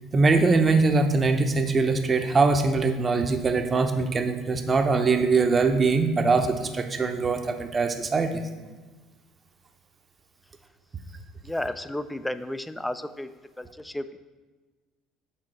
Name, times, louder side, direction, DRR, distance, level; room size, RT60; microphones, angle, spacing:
voice 1, 0.1-8.4, right 4 dB, 30° right, 6 dB, 0.7 m, -22 dB
voice 2, 11.4-13.3 13.6-14.2, left 1 dB, 10° left, 12 dB, 0.4 m, -32 dB
6.1 x 4.4 x 4.4 m, 1.3 s
figure-of-eight pair, 60°, 0 cm